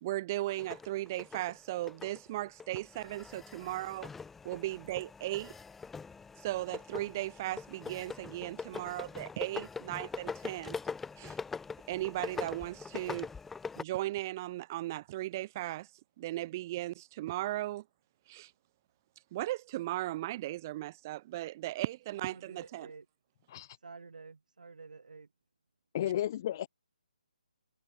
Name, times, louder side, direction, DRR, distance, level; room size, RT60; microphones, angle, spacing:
voice 1, 0.0-4.1 4.4-5.5 6.4-10.8 11.2-11.4 11.9-13.3 13.8-15.9 16.2-17.8 18.3-18.5 19.3-22.9, right 16 dB, 25° right, 0.7 m, -37 dB
sound 1, 0.6-13.8, left 5 dB, 5° left, 1.1 m, -43 dB
voice 2, 22.1-23.1 23.8-25.3, right 4 dB, 75° right, 7.3 m, -50 dB
voice 3, 25.9-26.7, left 12 dB, 25° left, 0.4 m, -33 dB
hypercardioid pair, 165°, 4 cm